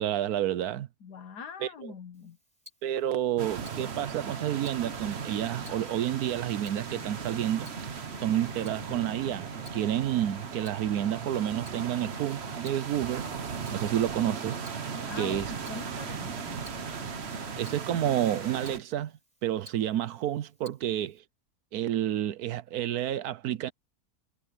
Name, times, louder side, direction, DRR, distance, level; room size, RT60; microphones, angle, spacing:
voice 1, 0.0-0.9 1.6-1.7 2.8-7.7 8.2-13.3 13.7-14.6 15.2-15.5 17.6-19.1 19.4-21.2 21.7-23.7, right 11 dB, 70° right, 1.2 m, -30 dB
voice 2, 1.0-2.4 15.0-16.7, left 5 dB, 85° left, 1.9 m, -43 dB
Tick-tock, 2.1-21.2, left 2 dB, 20° right, 8.2 m, -59 dB
sound 1, 3.4-18.8, right 6 dB, 45° right, 1.2 m, -37 dB
sound 2, 4.7-17.8, left 4 dB, 25° left, 1.4 m, -50 dB
omnidirectional pair, 1.7 m